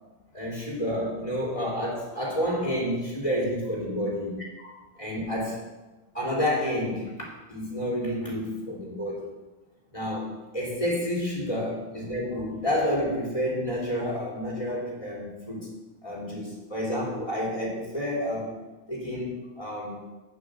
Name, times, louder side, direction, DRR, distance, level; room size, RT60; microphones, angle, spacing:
voice 1, 0.3-5.6 6.1-9.3 9.9-15.7 16.0-18.6 18.9-20.0, equal, 25° left, -3 dB, 3.1 m, -30 dB
8.6 x 7.6 x 6.4 m, 1.1 s
omnidirectional pair, 1.4 m